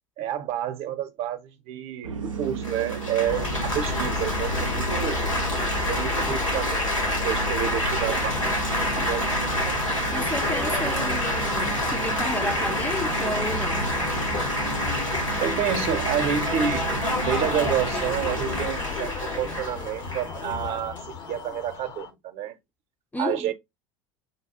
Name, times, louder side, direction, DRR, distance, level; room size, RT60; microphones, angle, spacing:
voice 1, 0.2-5.2 5.9-6.9 7.2-8.4 9.0-9.8 15.4-16.8 17.2-22.6 23.2-23.5, right 9 dB, 40° right, 0.6 m, -29 dB
sound 1, 2.0-18.7, right 5 dB, 80° right, 0.4 m, -34 dB
Laughter / Applause / Chatter, 2.6-21.8, left 1 dB, 90° left, 1.8 m, -28 dB
sound 2, 3.3-22.1, left 8 dB, 50° left, 0.7 m, -35 dB
voice 2, 10.1-13.9 23.1-23.5, left 1 dB, 10° left, 0.4 m, -32 dB
6.5 x 2.3 x 2.6 m
figure-of-eight pair, 75°, 16 cm